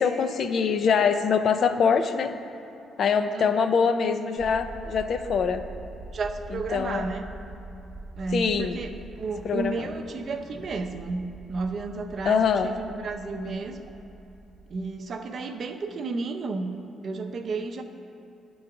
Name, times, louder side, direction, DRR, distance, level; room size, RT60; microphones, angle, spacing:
voice 1, 0.0-2.3 3.0-5.6 6.7-7.0 8.3-8.8 9.4-9.9 12.2-12.7, left 6 dB, 60° left, 9 dB, 0.4 m, -23 dB
sound 1, 4.4-15.0, right 2 dB, 10° right, 0.7 m, -44 dB
voice 2, 6.1-7.2 8.2-8.9 9.2-13.8 14.7-16.8 17.0-17.8, right 3 dB, 55° right, 6 dB, 0.5 m, -32 dB
8.8 x 3.9 x 5.8 m, 2.9 s
cardioid pair, 90°, 0 cm